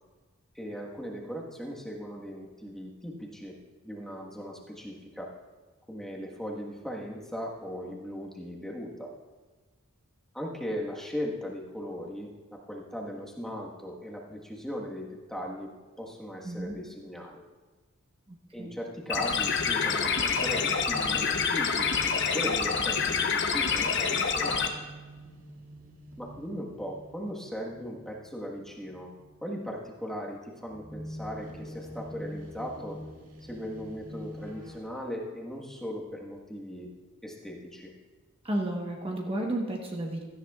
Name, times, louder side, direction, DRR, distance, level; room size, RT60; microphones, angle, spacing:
voice 1, 0.5-3.5 3.8-5.3 5.9-9.1 10.3-15.7 16.0-17.4 18.5-24.7 26.2-29.1 29.4-33.0 33.4-36.9 37.2-37.9, equal, ahead, -2 dB, 1.4 m, -38 dB
voice 2, 16.4-16.8 18.3-18.8 38.4-40.2, right 1 dB, 25° right, 0 dB, 1.1 m, -32 dB
sound 1, 19.1-24.7, left 5 dB, 55° left, 0.9 m, -27 dB
sound 2, 19.6-34.8, equal, 70° right, 2.1 m, -46 dB
16.5 x 13.5 x 2.4 m, 1.3 s
head